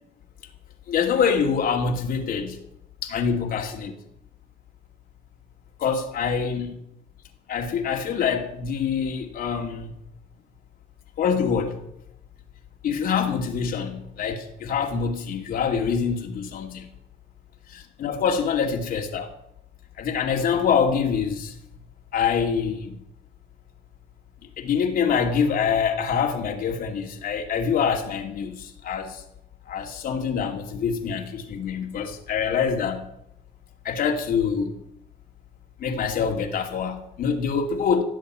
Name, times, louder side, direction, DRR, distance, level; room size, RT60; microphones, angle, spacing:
voice 1, 0.9-2.6 3.0-3.9 5.8-6.7 7.5-9.9 11.2-11.8 12.8-16.9 17.7-19.3 20.0-21.5 22.1-23.0 24.6-29.2 29.7-33.1 33.8-34.7 35.8-38.0, left 6 dB, 60° left, 2 dB, 2.5 m, -25 dB
16.0 x 7.5 x 8.6 m, 0.79 s
cardioid pair, 110°, 17 cm